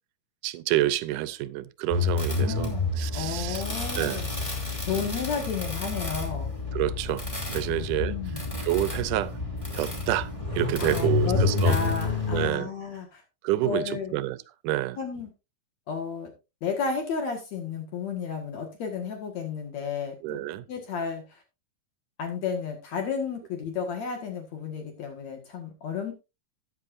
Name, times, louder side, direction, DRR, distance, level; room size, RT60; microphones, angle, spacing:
voice 1, 0.4-2.7 3.0-3.6 4.0-4.2 5.0-5.1 6.7-7.3 7.5-8.2 8.6-9.3 9.7-11.8 12.3-12.7 13.4-14.4 14.6-15.0 20.2-20.6, right 15 dB, 85° right, 2.2 m, -28 dB
sound 1, 1.9-12.5, left 4 dB, 10° left, 2.7 m, -29 dB
voice 2, 2.4-4.3 4.9-6.5 7.7-8.5 10.8-11.4 11.6-13.2 13.6-14.2 15.0-15.3 15.9-16.3 16.6-20.4 20.7-21.4 22.2-26.1, left 6 dB, 65° left, 2.8 m, -32 dB
13.5 x 9.8 x 2.5 m
omnidirectional pair, 3.6 m